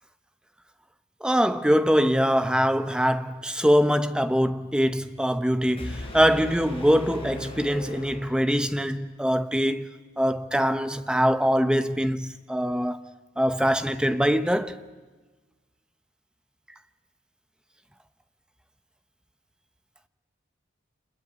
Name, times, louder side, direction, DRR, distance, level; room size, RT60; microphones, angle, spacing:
voice 1, 1.2-9.9 10.2-13.0 13.4-14.8, equal, 5° right, 0.9 m, -23 dB
sound 1, 5.8-8.8, left 1 dB, 30° left, 7.2 m, -38 dB
26.5 x 21.5 x 8.2 m
head